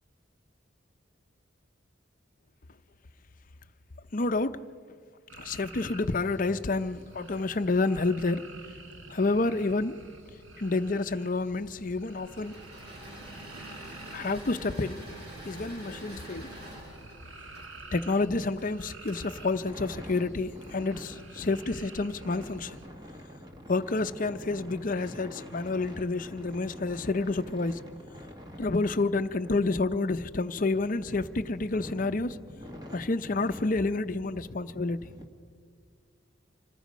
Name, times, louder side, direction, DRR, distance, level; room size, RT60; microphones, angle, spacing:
voice 1, 4.1-4.6 5.4-8.5 9.1-10.0 10.6-12.6 14.1-15.0 15.5-16.5 17.9-22.8 23.7-27.8 28.6-32.4 32.9-35.0, left 3 dB, 45° left, 0.6 m, -29 dB
sound 1, 5.3-22.9, right 3 dB, 85° right, 1.6 m, -50 dB
Engine / Mechanisms, 12.2-20.6, right 1 dB, 55° right, 6.3 m, -46 dB
sound 2, 19.6-35.2, equal, 20° right, 1.7 m, -47 dB
27.0 x 19.5 x 5.2 m
head